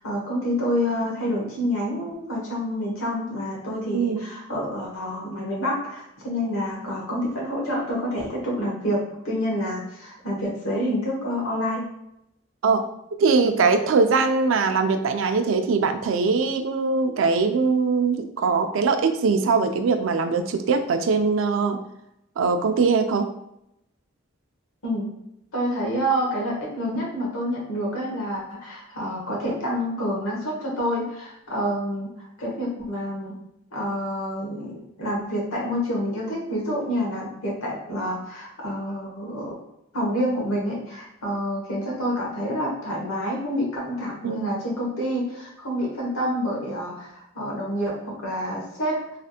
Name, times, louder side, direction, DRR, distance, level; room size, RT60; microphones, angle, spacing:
voice 1, 0.0-9.0 9.2-11.8 24.8-25.1 25.5-33.3 33.7-39.6 39.9-49.2, equal, 85° left, -3 dB, 1.2 m, -28 dB
voice 2, 3.9-4.3 6.4-6.7 12.6-12.8 13.2-21.8 22.4-23.3 44.2-44.5, right 4 dB, 70° right, 7 dB, 0.3 m, -22 dB
3.2 x 2.8 x 2.4 m, 0.81 s
head